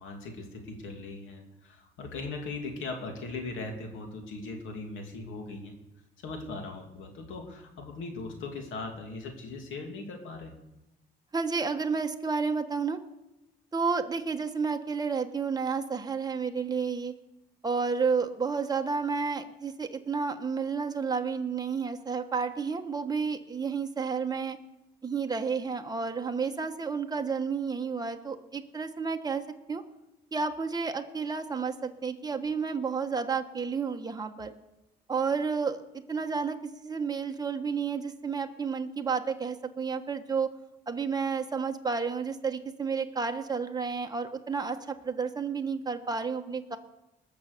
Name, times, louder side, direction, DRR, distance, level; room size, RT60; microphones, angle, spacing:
voice 1, 0.0-5.7 6.2-10.5, left 3 dB, 85° left, 3 dB, 2.7 m, -39 dB
voice 2, 11.3-13.0 13.7-17.1 17.6-24.6 25.0-29.8 30.3-34.5 35.1-40.5 40.9-46.8, right 5 dB, 20° right, 4 dB, 1.2 m, -31 dB
20.0 x 6.9 x 6.6 m, 0.93 s
cardioid pair, 90°, 20 cm